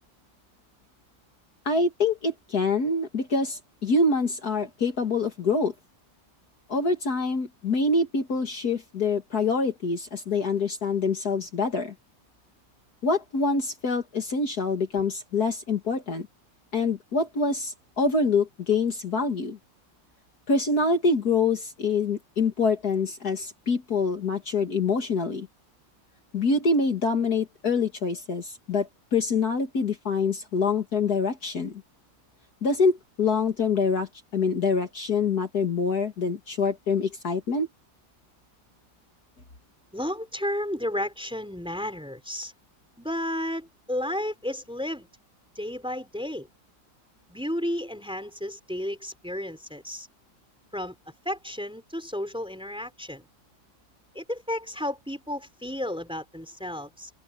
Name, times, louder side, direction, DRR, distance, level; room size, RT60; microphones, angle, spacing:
voice 1, 1.7-5.7 6.7-11.9 13.0-16.3 16.7-19.6 20.5-25.5 26.3-31.8 32.6-37.7, left 4 dB, 55° left, 2.5 m, -25 dB
voice 2, 39.9-42.5 43.0-45.1 45.6-46.5 47.3-50.1 50.7-50.9 51.3-53.3 54.1-57.1, left 1 dB, 5° right, 3.6 m, -32 dB
open air
omnidirectional pair, 2.1 m